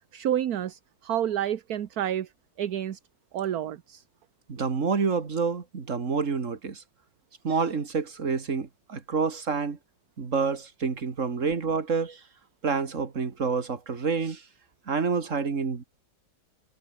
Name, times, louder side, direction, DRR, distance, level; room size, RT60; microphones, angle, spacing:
voice 1, 0.1-2.3 2.6-3.0 3.3-4.0, right 10 dB, 60° right, 1.4 m, -29 dB
voice 2, 4.5-6.8 7.4-9.8 10.2-12.2 12.6-14.4 14.9-15.8, right 5 dB, 45° right, 2.4 m, -28 dB
omnidirectional pair, 1.9 m